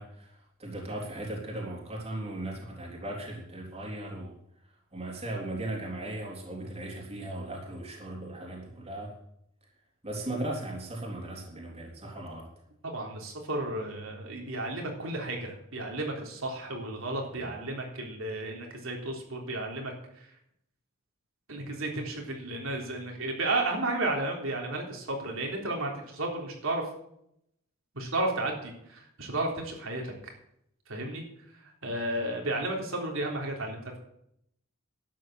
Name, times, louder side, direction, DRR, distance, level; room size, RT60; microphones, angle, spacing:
voice 1, 0.0-4.3 4.9-9.1 10.0-12.5 17.3-17.5, right 1 dB, 30° right, -1 dB, 3.5 m, -37 dB
voice 2, 12.8-20.3 21.5-26.8 27.9-30.1 30.9-31.2 31.6-34.0, right 2 dB, 65° right, 1 dB, 3.6 m, -33 dB
12.0 x 9.3 x 7.7 m, 0.75 s
head